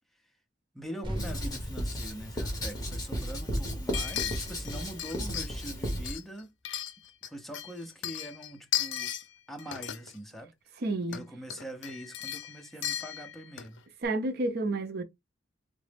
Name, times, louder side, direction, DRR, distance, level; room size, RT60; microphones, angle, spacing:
voice 1, 0.7-6.5 7.2-9.1 9.5-10.5 11.1-13.8, right 1 dB, ahead, 0.5 m, -43 dB
sound 1, 1.0-5.8, equal, 25° right, 1.1 m, -41 dB
Writing, 1.2-6.2, equal, 20° left, 1.2 m, -34 dB
sound 2, 3.9-5.7 6.0-7.3 7.5-9.2 9.6-10.1 11.0-11.2 11.5-13.8 14.0-14.1, left 11 dB, 70° left, 0.5 m, -36 dB
voice 2, 10.8-11.3 14.0-15.0, right 2 dB, 55° right, 0.6 m, -30 dB
3.8 x 2.0 x 3.3 m
head